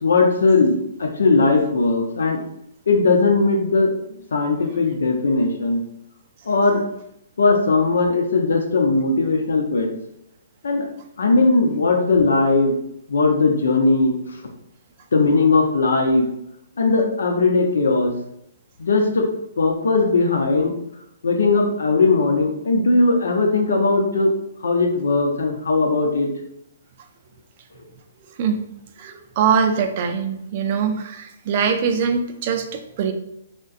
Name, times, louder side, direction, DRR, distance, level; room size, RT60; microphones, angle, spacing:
voice 1, 0.0-2.4 2.9-3.9 4.3-5.8 6.5-6.8 7.4-9.9 10.6-10.9 11.2-12.7 13.1-14.1 15.1-16.3 16.8-18.1 18.8-19.3 19.6-20.7 21.2-24.3 24.6-26.3, left 3 dB, 80° left, 3 dB, 0.6 m, -18 dB
voice 2, 29.0-33.1, right 6 dB, 40° right, 6 dB, 0.4 m, -22 dB
3.6 x 2.2 x 2.4 m, 0.77 s
hypercardioid pair, 150°, 0 cm